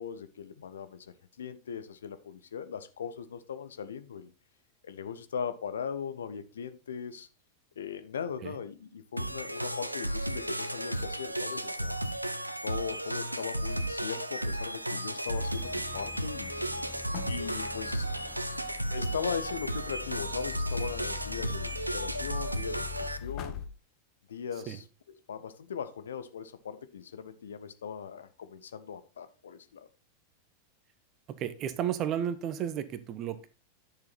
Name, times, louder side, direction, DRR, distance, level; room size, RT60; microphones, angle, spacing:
voice 1, 0.0-4.3 4.8-7.3 7.8-12.0 12.6-16.6 17.3-18.1 18.9-23.6 24.3-24.8 25.3-29.9, left 7 dB, 65° left, 0.9 m, -39 dB
sound 1, 9.2-23.2, right 1 dB, 85° right, 0.7 m, -34 dB
sound 2, 15.3-23.7, left 8 dB, 35° left, 1.8 m, -43 dB
voice 2, 31.4-33.5, right 10 dB, 35° right, 1.1 m, -33 dB
10.0 x 6.8 x 4.1 m
figure-of-eight pair, 90°, 0 cm